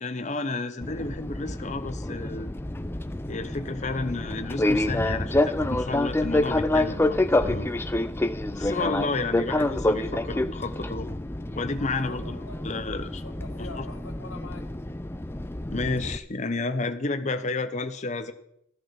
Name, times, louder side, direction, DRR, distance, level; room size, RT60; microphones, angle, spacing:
voice 1, 0.0-2.5 3.3-7.7 8.5-11.1 11.5-12.4 12.6-13.2 13.8-13.9 15.7-18.3, left 3 dB, 35° left, 9 dB, 0.8 m, -31 dB
Fixed-wing aircraft airplane, 0.8-16.2, left 1 dB, 10° left, 0.5 m, -28 dB
voice 2, 12.0-12.6 13.2-14.7, left 3 dB, 80° left, 4 dB, 1.8 m, -43 dB
13.5 x 11.0 x 5.7 m, 0.74 s
head